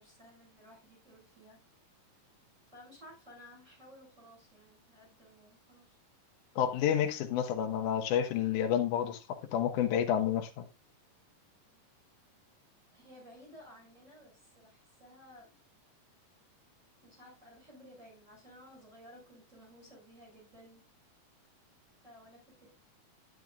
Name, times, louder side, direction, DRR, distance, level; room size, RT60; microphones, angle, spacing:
voice 1, 0.0-1.6 2.6-6.0 12.9-15.5 17.0-20.8 22.0-22.7, equal, 20° right, 7.2 m, -56 dB
voice 2, 6.6-9.2 9.5-10.7, left 9 dB, 70° left, 2.5 m, -29 dB
11.0 x 10.0 x 2.4 m
omnidirectional pair, 3.9 m